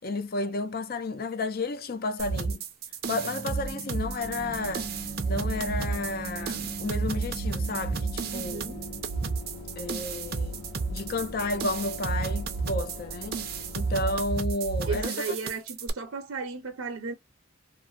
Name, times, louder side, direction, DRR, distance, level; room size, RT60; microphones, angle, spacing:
voice 1, 0.0-2.6 3.1-4.9 5.3-8.6 9.8-10.6 10.9-13.4 13.7-15.3, left 2 dB, 45° left, 0.4 m, -32 dB
sound 1, 2.2-15.9, right 4 dB, 45° right, 0.5 m, -32 dB
sound 2, 3.0-9.0, right 4 dB, 20° left, 1.0 m, -41 dB
sound 3, 4.2-14.3, left 1 dB, 70° left, 1.3 m, -43 dB
voice 2, 8.3-8.8 14.9-17.1, right 4 dB, 85° right, 0.7 m, -35 dB
2.6 x 2.5 x 2.3 m
head